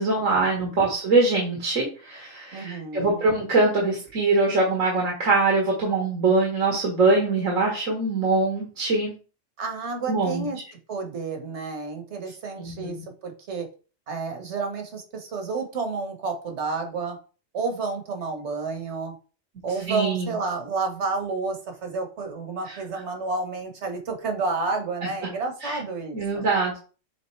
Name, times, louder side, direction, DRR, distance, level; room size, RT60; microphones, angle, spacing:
voice 1, 0.0-9.1 10.1-10.5 12.6-13.1 19.9-20.3 22.7-22.8 25.0-25.1 25.6-25.8 26.1-26.8, right 3 dB, 80° right, -2 dB, 2.0 m, -23 dB
voice 2, 2.5-3.2 9.6-10.6 10.9-13.0 13.2-13.7 14.1-17.2 17.5-19.1 19.6-26.5, right 4 dB, 60° right, 4 dB, 1.5 m, -30 dB
7.5 x 3.9 x 3.2 m, 0.36 s
omnidirectional pair, 1.3 m